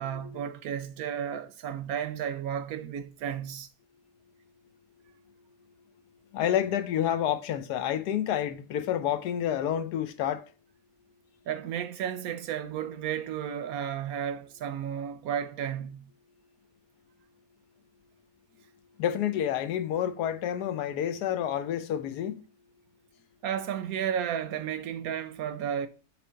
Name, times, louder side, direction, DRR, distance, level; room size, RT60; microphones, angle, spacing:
voice 1, 0.0-3.7 11.5-16.1 23.4-25.9, right 9 dB, 70° right, 1.0 m, -33 dB
voice 2, 6.3-10.4 19.0-22.4, left 10 dB, 75° left, 1.2 m, -29 dB
7.5 x 3.4 x 5.0 m
omnidirectional pair, 1.8 m